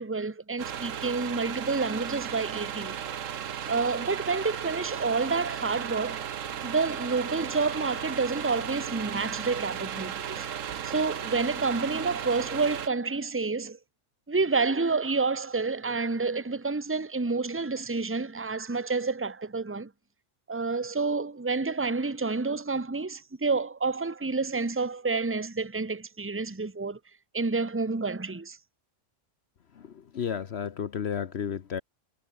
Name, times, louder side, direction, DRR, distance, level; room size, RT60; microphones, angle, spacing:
voice 1, 0.0-2.9 3.7-6.3 6.6-10.4 10.8-13.8 14.3-19.9 20.5-27.0 27.3-28.6, right 4 dB, 10° right, 1.1 m, -29 dB
sound 1, 0.6-12.9, right 9 dB, 80° right, 1.4 m, -35 dB
voice 2, 30.1-31.8, left 7 dB, 60° left, 1.1 m, -32 dB
omnidirectional pair, 1.3 m